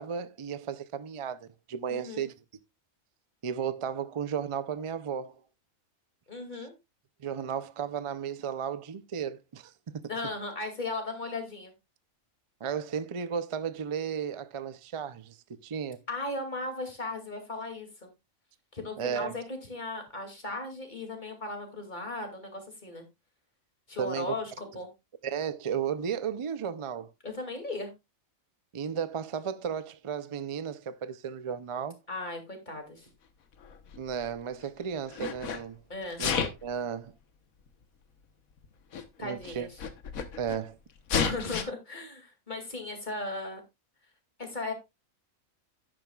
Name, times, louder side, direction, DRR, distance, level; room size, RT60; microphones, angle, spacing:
voice 1, 0.0-2.3 3.4-5.4 7.2-10.1 12.6-15.4 15.6-16.0 19.0-19.3 24.0-24.4 25.2-27.1 28.7-32.0 34.0-35.8 36.2-36.3 36.6-37.1 39.2-39.7 40.4-40.8, right 7 dB, 55° right, 0.3 m, -34 dB
voice 2, 1.9-2.2 6.3-6.7 10.1-11.7 16.1-18.1 18.7-23.0 23.9-24.9 27.2-27.9 32.1-33.1 35.9-36.2 39.2-39.8 41.2-43.6 44.4-44.7, left 2 dB, 35° left, 2.6 m, -37 dB
Sneeze, 33.6-34.6 35.1-35.6 36.1-36.7 37.7-37.8 38.6-38.7 38.9-39.0 39.4-40.6 41.1-41.6, left 6 dB, 90° left, 1.6 m, -31 dB
11.0 x 9.9 x 2.3 m
omnidirectional pair, 1.4 m